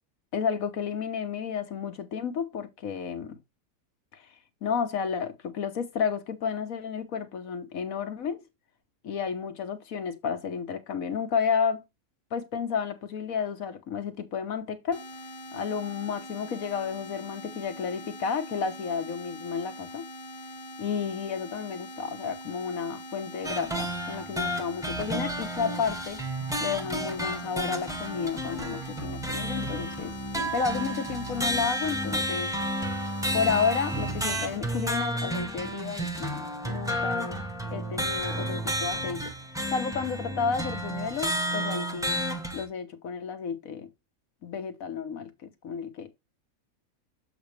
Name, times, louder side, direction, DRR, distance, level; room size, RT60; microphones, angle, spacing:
voice 1, 0.3-3.4 4.1-4.3 4.6-8.4 9.0-11.8 12.3-15.1 15.5-20.1 20.8-26.2 26.6-32.5 33.3-37.4 37.7-39.3 39.7-42.2 42.5-43.9 44.4-46.1, left 6 dB, 65° left, 1.5 m, -31 dB
sound 1, 14.9-34.6, equal, 35° left, 1.4 m, -43 dB
sound 2, 23.4-42.7, equal, 5° right, 0.9 m, -31 dB
7.3 x 5.1 x 3.2 m
omnidirectional pair, 1.6 m